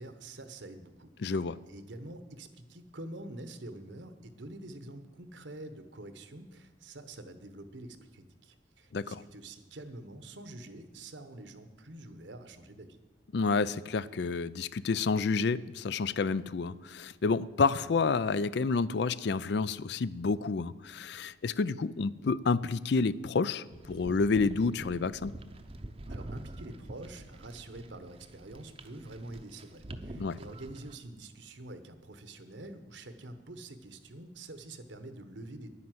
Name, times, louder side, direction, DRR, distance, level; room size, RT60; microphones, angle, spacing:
voice 1, 0.0-1.4 1.7-13.0 26.1-35.7, right 2 dB, 70° right, 10 dB, 1.2 m, -46 dB
voice 2, 1.2-1.6 8.9-9.2 13.3-25.3 30.1-30.4, left 4 dB, 60° left, 17 dB, 0.4 m, -29 dB
sound 1, 23.7-31.0, right 1 dB, 30° right, 0.7 m, -46 dB
10.5 x 9.8 x 7.7 m, 1.3 s
head